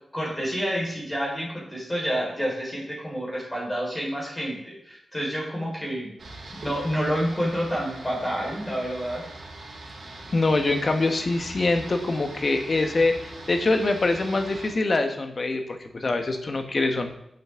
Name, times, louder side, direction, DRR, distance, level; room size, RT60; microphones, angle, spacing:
voice 1, 0.1-6.1 6.5-9.2, equal, 10° left, -4 dB, 4.4 m, -29 dB
sound 1, 6.2-14.7, right 2 dB, 60° right, 2.6 m, -42 dB
voice 2, 10.3-17.1, left 2 dB, 35° left, 6 dB, 1.2 m, -24 dB
11.5 x 7.9 x 3.7 m, 0.77 s
wide cardioid pair, 145°, 0 cm